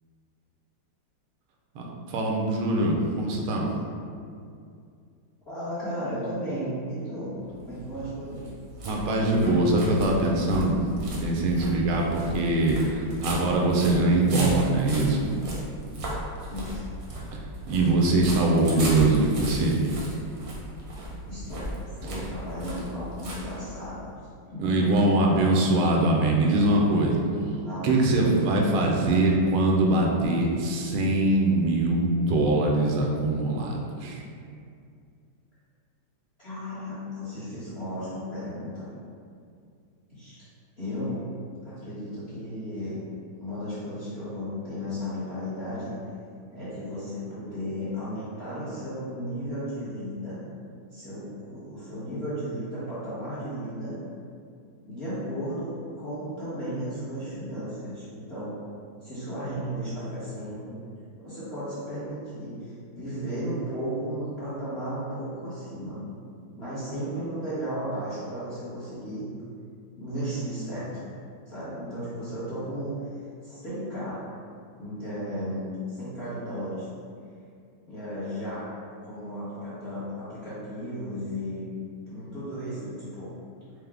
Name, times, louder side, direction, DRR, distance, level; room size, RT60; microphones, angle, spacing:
voice 1, 1.7-3.7 8.8-10.8 11.2-15.3 17.7-19.8 24.6-27.2 27.8-34.2, right 2 dB, 85° right, -1 dB, 1.4 m, -23 dB
voice 2, 5.5-7.3 7.6-8.5 16.5-16.8 21.3-21.6 22.0-24.1 24.5-24.6 27.6-28.1 36.4-38.9 40.1-40.4 40.8-41.2 41.6-43.0 43.4-45.9 46.5-50.4 50.9-53.9 54.8-55.7 56.0-58.5 59.0-60.8 61.2-66.0 66.5-69.3 70.0-70.9 71.5-72.9 73.4-74.2 74.8-76.9 77.9-78.6 79.0-81.6 82.1-83.3, equal, 45° left, -13 dB, 0.9 m, -34 dB
sound 1, 7.5-24.0, right 1 dB, 60° right, 1.0 m, -36 dB
4.7 x 2.1 x 3.3 m, 2.3 s
omnidirectional pair, 2.3 m